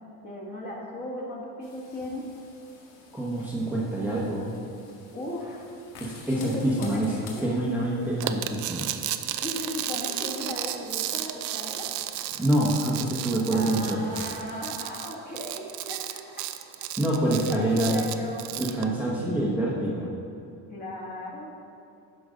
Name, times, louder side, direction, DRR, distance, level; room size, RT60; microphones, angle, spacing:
voice 1, 0.2-2.3 5.1-5.6 6.4-7.5 9.4-11.9 13.5-16.2 17.4-18.5 20.7-21.5, left 1 dB, 25° left, -3 dB, 1.7 m, -36 dB
sound 1, 1.6-14.4, left 4 dB, 70° left, 1.9 m, -51 dB
voice 2, 3.1-4.5 6.0-8.9 12.4-14.0 17.0-18.0 18.6-20.1, right 1 dB, 5° right, -6 dB, 1.0 m, -26 dB
sound 2, 8.2-18.8, right 13 dB, 55° right, 0.5 m, -33 dB
11.5 x 5.2 x 5.1 m, 2.7 s
cardioid pair, 140°, 37 cm